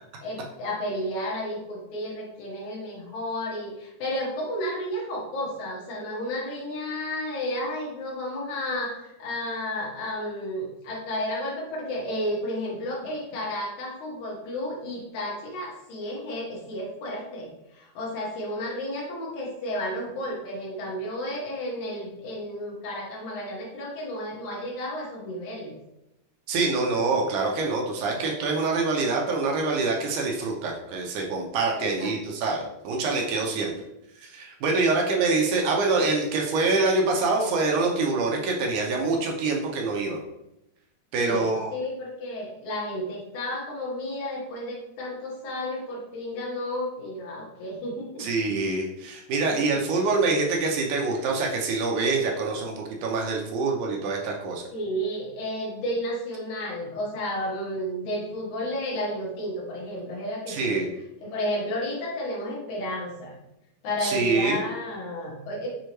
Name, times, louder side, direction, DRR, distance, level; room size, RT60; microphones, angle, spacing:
voice 1, 0.2-25.8 31.8-32.1 41.2-48.3 49.6-49.8 54.7-60.8 61.2-63.4 63.8-65.7, equal, 70° left, -4 dB, 2.6 m, -32 dB
voice 2, 26.5-33.7 34.2-40.2 41.1-41.7 48.2-54.6 60.5-60.9 64.0-64.6, right 3 dB, 75° right, 0 dB, 2.1 m, -25 dB
6.3 x 2.7 x 3.0 m, 0.87 s
omnidirectional pair, 3.7 m